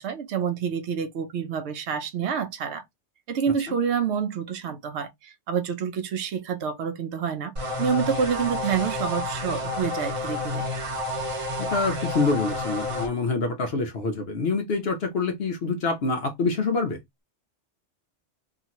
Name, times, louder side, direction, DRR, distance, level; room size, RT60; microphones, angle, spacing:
voice 1, 0.0-2.8 3.3-7.5 7.8-10.7, right 7 dB, 75° right, 0.9 m, -28 dB
sound 1, 7.6-13.1, left 1 dB, 35° right, 0.7 m, -30 dB
voice 2, 11.6-17.0, left 3 dB, 65° left, 0.9 m, -26 dB
2.8 x 2.4 x 2.8 m
omnidirectional pair, 1.2 m